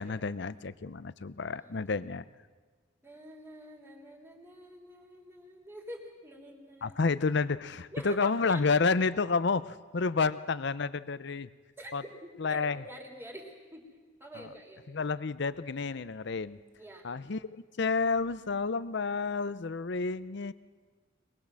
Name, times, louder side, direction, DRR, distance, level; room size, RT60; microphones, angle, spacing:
voice 1, 0.0-2.2 6.8-11.5 11.9-12.0 12.4-12.8 14.3-14.5 14.9-16.6 17.0-20.5, left 4 dB, 60° left, 16 dB, 0.6 m, -30 dB
voice 2, 1.6-2.0 3.0-7.0 7.9-8.8 11.8-11.9 12.4-13.9 14.2-14.8 16.8-17.1, equal, 10° right, 0 dB, 3.3 m, -47 dB
23.0 x 21.0 x 7.6 m, 1.4 s
head